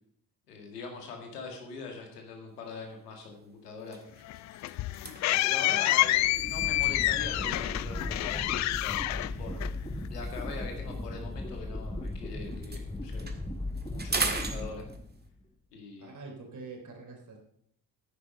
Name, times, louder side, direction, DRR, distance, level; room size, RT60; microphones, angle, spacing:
voice 1, 0.5-4.0 5.0-9.0 9.4-9.7 10.1-13.3 13.9-14.8 15.7-16.1, left 4 dB, 80° left, 3 dB, 2.0 m, -42 dB
sound 1, 2.6-2.9 3.3-3.4 3.8-7.7 8.6-12.1 12.4-15.3, right 3 dB, 20° right, 1.8 m, -40 dB
sound 2, 4.2-10.1, left 17 dB, 40° left, 0.4 m, -28 dB
sound 3, 5.9-15.4, left 2 dB, 10° left, 1.4 m, -37 dB
voice 2, 16.0-17.4, right 3 dB, 40° right, 2 dB, 3.5 m, -45 dB
10.5 x 8.5 x 5.4 m, 0.68 s
figure-of-eight pair, 45°, 47 cm